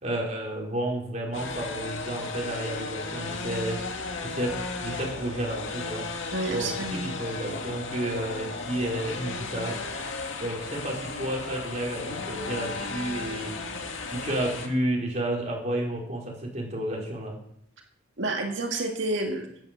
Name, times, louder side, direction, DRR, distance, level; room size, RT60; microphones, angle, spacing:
voice 1, 0.0-3.8 4.2-6.1 6.5-9.8 10.4-13.6 14.1-17.4, right 1 dB, 35° right, -2 dB, 4.3 m, -31 dB
sound 1, 1.3-14.7, left 3 dB, 70° left, 2.0 m, -35 dB
voice 2, 6.3-7.1 18.2-19.5, right 2 dB, 65° right, 1 dB, 2.1 m, -29 dB
10.5 x 9.1 x 7.5 m, 0.70 s
head